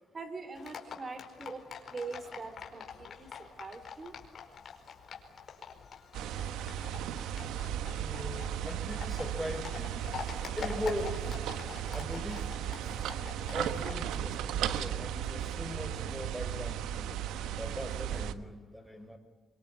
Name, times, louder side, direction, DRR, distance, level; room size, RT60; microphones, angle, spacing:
voice 1, 0.1-1.6 1.9-3.3 3.6-4.1, right 3 dB, 35° right, 11 dB, 3.8 m, -42 dB
Livestock farm animals working animals, 0.6-13.9, left 6 dB, 55° left, 4.7 m, -46 dB
sound 1, 6.1-18.3, right 10 dB, 90° right, 1.2 m, -35 dB
voice 2, 7.9-10.0 10.6-11.4 11.9-12.8 13.5-17.1 17.6-19.2, equal, 5° right, 8 dB, 5.8 m, -40 dB
24.5 x 24.5 x 8.7 m, 1.2 s
cardioid pair, 90°, 0 cm